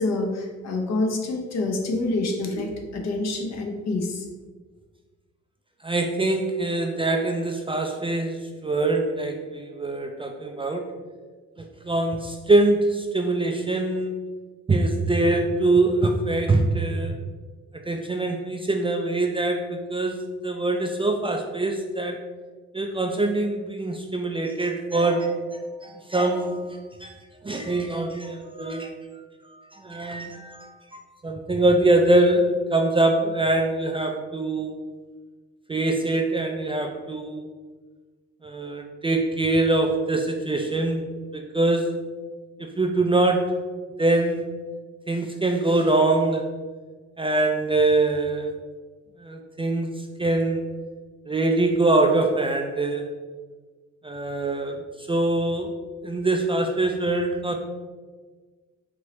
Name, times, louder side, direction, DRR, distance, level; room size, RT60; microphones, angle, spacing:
voice 1, 0.0-4.3, left 2 dB, 60° left, 3 dB, 0.8 m, -27 dB
voice 2, 5.8-10.9 11.6-14.2 14.7-17.2 17.9-22.2 22.7-27.1 27.4-28.9 29.7-34.8 35.7-37.5 38.4-41.1 41.3-42.1 42.6-43.5 44.0-44.6 45.1-46.6 47.2-48.5 49.2-50.7 51.3-53.0 54.0-55.8 56.0-57.5, right 2 dB, 20° right, 3 dB, 0.3 m, -24 dB
4.6 x 2.9 x 3.1 m, 1.4 s
cardioid pair, 90°, 30 cm